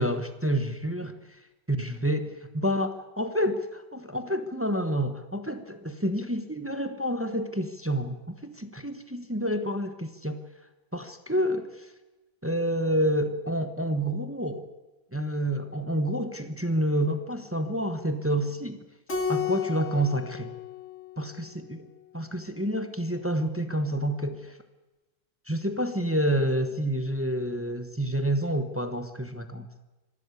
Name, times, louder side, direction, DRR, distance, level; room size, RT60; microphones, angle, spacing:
voice 1, 0.0-1.4 1.7-10.4 10.9-11.9 12.4-14.7 15.1-18.8 19.3-20.5 21.2-21.5 22.1-24.6 25.5-29.6, equal, 10° right, 8 dB, 0.7 m, -28 dB
Keyboard (musical), 19.1-21.7, left 7 dB, 35° left, 3.0 m, -33 dB
24.5 x 13.0 x 8.3 m, 1.1 s
omnidirectional pair, 2.0 m